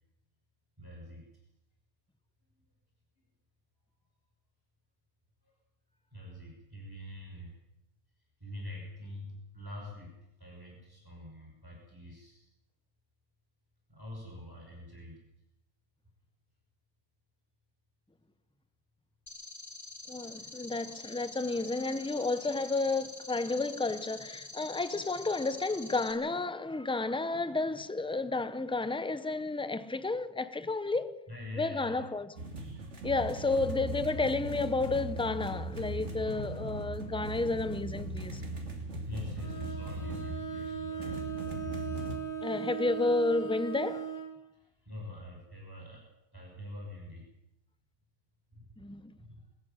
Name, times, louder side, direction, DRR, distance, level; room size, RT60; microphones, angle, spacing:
voice 1, 0.8-1.3 5.4-5.5 6.1-7.6 8.4-12.5 13.9-15.2 31.3-32.0 33.3-33.6 39.0-41.2 42.0-42.2 44.6-46.0 46.3-47.2 48.5-48.7 49.2-49.4, left 1 dB, 15° right, 6.0 m, -45 dB
sound 1, 19.3-26.1, left 2 dB, 25° left, 2.8 m, -47 dB
voice 2, 20.1-31.2 31.5-32.3 33.0-38.4 42.4-44.1 48.8-49.0, left 3 dB, 5° left, 0.6 m, -31 dB
sound 2, 32.4-42.2, right 2 dB, 50° right, 3.2 m, -39 dB
Bowed string instrument, 39.4-44.3, right 7 dB, 70° left, 3.5 m, -38 dB
22.0 x 14.0 x 9.0 m
omnidirectional pair, 1.5 m